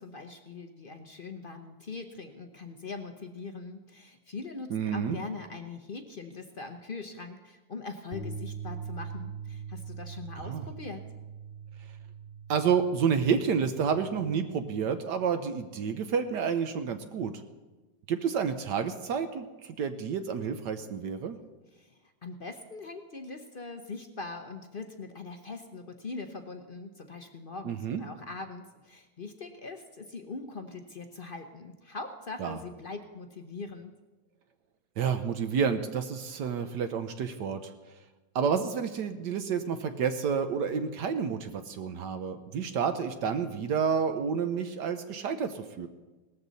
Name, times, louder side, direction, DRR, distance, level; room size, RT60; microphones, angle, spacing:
voice 1, 0.0-11.0 21.7-33.9, left 3 dB, 50° left, 6 dB, 0.6 m, -42 dB
voice 2, 4.7-5.2 10.4-10.6 12.5-17.4 18.1-21.4 27.6-28.0 32.4-32.6 35.0-37.7 38.3-45.9, right 6 dB, 70° right, 8 dB, 1.3 m, -29 dB
sound 1, 8.1-14.4, right 6 dB, 40° right, 2.2 m, -42 dB
18.5 x 13.5 x 4.0 m, 1.2 s
omnidirectional pair, 2.1 m